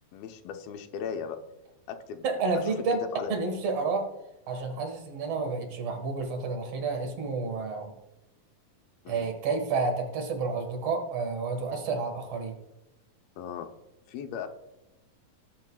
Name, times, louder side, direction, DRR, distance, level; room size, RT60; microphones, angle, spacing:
voice 1, 0.1-1.4 1.9-2.3 2.6-2.7 3.1-3.3 9.1-9.3 13.4-13.7 14.1-14.5, left 7 dB, 90° left, 5 dB, 2.6 m, -37 dB
voice 2, 2.2-3.0 3.3-4.1 4.5-7.9 9.1-12.6, right 4 dB, 55° right, 5 dB, 2.1 m, -30 dB
18.0 x 7.7 x 2.3 m, 0.96 s
omnidirectional pair, 4.1 m